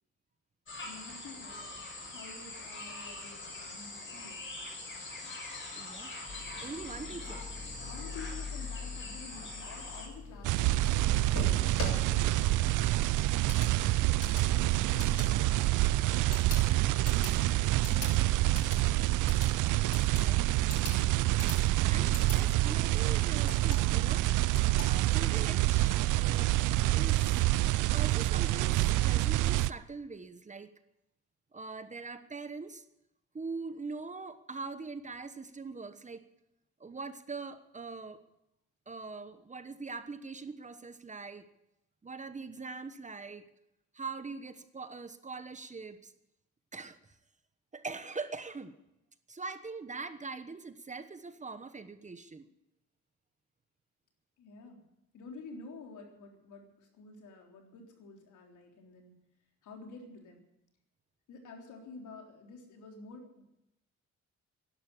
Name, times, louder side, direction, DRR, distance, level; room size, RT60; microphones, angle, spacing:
sound 1, 0.7-10.1, left 2 dB, 40° left, 6.8 m, -43 dB
voice 1, 0.8-4.4 7.8-12.7 14.4-16.0 16.8-18.8 54.4-54.9 55.1-59.1 59.6-60.4 61.3-63.6, left 3 dB, 80° left, 2 dB, 3.8 m, -50 dB
voice 2, 5.7-6.1 6.6-7.4 20.1-20.4 21.9-24.3 24.8-26.5 26.9-27.4 27.9-30.7 31.5-32.8 33.3-36.3 36.8-38.2 38.9-41.4 42.0-43.4 43.9-46.1 46.7-47.2 47.7-48.7 49.3-52.5, right 4 dB, 25° right, 11 dB, 1.1 m, -42 dB
sound 2, 6.3-25.4, left 4 dB, 60° left, 8.0 m, -45 dB
sound 3, 10.4-29.7, right 17 dB, 85° right, 0.6 m, -27 dB
11.5 x 11.5 x 10.0 m, 0.87 s
cardioid pair, 90°, 30 cm